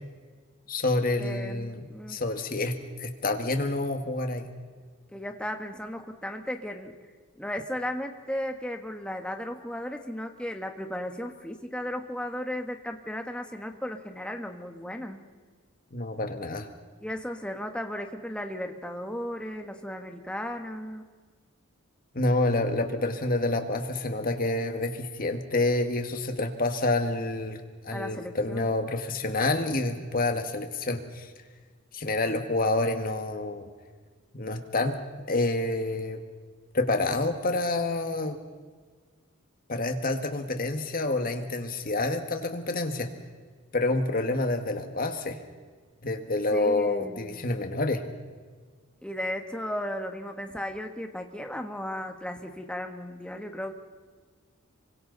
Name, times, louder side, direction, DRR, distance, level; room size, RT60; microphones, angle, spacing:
voice 1, 0.7-1.8 2.1-4.5 15.9-16.7 22.1-31.3 31.9-33.7 34.3-35.0 35.3-36.2 36.7-38.4 39.7-43.1 43.7-45.4 46.0-48.0, left 2 dB, 45° left, 6 dB, 1.8 m, -28 dB
voice 2, 1.2-2.2 5.1-6.9 7.4-15.3 17.0-21.0 27.9-28.7 46.5-47.5 49.0-53.7, left 1 dB, 5° left, 4 dB, 1.5 m, -35 dB
27.0 x 24.5 x 4.1 m, 1.5 s
head